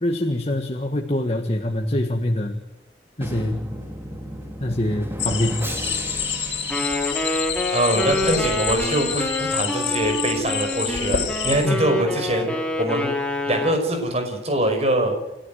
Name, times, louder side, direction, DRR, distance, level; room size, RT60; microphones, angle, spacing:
voice 1, 0.0-2.6 3.2-3.6 4.6-5.6 11.6-11.8, left 1 dB, 35° left, 4 dB, 1.7 m, -24 dB
Drum, 3.2-8.1, right 1 dB, 15° right, 2.4 m, -34 dB
sound 1, 5.2-11.7, left 8 dB, 75° left, 3.5 m, -28 dB
Wind instrument woodwind instrument, 6.7-13.8, left 1 dB, 5° left, 3.3 m, -27 dB
voice 2, 7.7-12.5 12.8-15.2, right 1 dB, 35° right, 5 dB, 5.5 m, -23 dB
29.5 x 13.5 x 9.3 m, 0.98 s
head